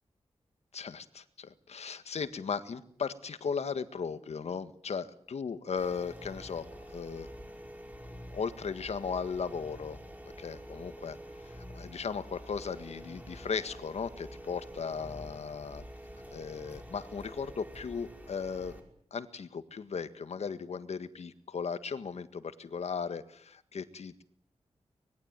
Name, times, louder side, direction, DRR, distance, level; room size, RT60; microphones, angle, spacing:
voice 1, 0.7-7.3 8.3-10.0 10.2-11.2 11.4-15.8 16.3-18.8 19.1-24.2, left 5 dB, 70° left, 11 dB, 1.7 m, -37 dB
sound 1, 5.8-18.8, equal, 15° right, 5.0 m, -47 dB
25.0 x 21.0 x 9.1 m, 0.67 s
wide cardioid pair, 150°, 11 cm